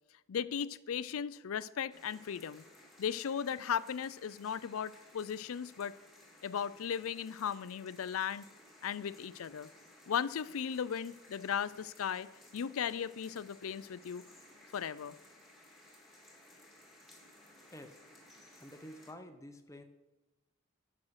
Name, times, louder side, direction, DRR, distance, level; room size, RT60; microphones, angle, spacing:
voice 1, 0.3-2.6 3.0-6.0 6.4-8.4 8.8-9.7 10.1-14.2 14.7-15.2, left 7 dB, 80° left, 17 dB, 0.4 m, -37 dB
sound 1, 1.9-19.1, left 1 dB, ahead, 1.8 m, -59 dB
voice 2, 18.6-19.8, equal, 15° left, 7 dB, 0.8 m, -49 dB
11.5 x 6.3 x 6.3 m, 1.0 s
head